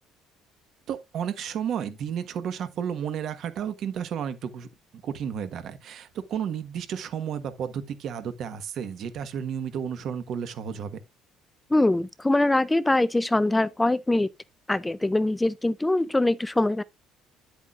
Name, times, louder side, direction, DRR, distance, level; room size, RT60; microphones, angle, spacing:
voice 1, 0.9-4.7 4.9-11.0, right 8 dB, 45° right, 1.2 m, -32 dB
voice 2, 11.7-14.3 14.7-16.8, left 2 dB, 5° left, 0.4 m, -23 dB
10.0 x 8.3 x 2.4 m
cardioid pair, 175°, 0 cm